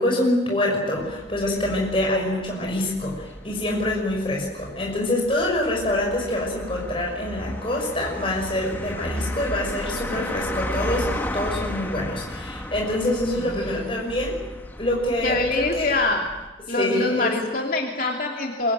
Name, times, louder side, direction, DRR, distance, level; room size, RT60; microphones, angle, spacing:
voice 1, 0.0-14.4 14.8-15.9 16.7-17.4, left 1 dB, 30° left, -1 dB, 6.3 m, -25 dB
sound 1, 1.0-16.5, left 1 dB, 10° left, 2.0 m, -34 dB
voice 2, 13.4-13.8 15.2-16.3 16.7-18.7, left 2 dB, 50° left, 1 dB, 2.8 m, -25 dB
25.5 x 24.0 x 9.3 m, 1.1 s
head